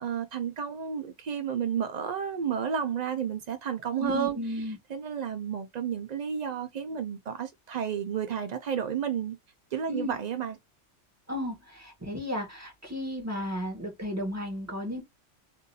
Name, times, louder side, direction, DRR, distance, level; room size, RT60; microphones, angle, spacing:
voice 1, 0.0-9.4 9.7-10.6, right 8 dB, 75° right, 0.4 m, -32 dB
voice 2, 4.0-4.8 9.9-10.1 11.3-15.0, equal, 15° right, 1.5 m, -34 dB
3.8 x 2.6 x 2.6 m
omnidirectional pair, 1.3 m